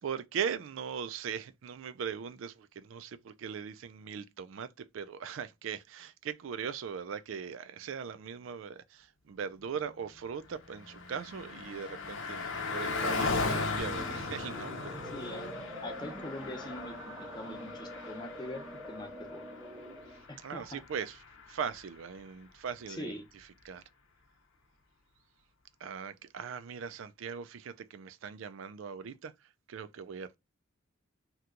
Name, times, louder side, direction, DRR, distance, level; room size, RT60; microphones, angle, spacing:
voice 1, 0.0-15.0 20.4-23.8 25.8-30.4, right 7 dB, 70° right, 0.4 m, -40 dB
Car passing by, 10.2-22.0, left 4 dB, 70° left, 0.7 m, -38 dB
sound 1, 13.8-20.3, equal, 10° right, 0.8 m, -45 dB
voice 2, 15.1-15.5 15.8-19.4 20.3-20.8 22.9-23.2, left 1 dB, 20° left, 0.7 m, -43 dB
2.8 x 2.2 x 3.7 m
head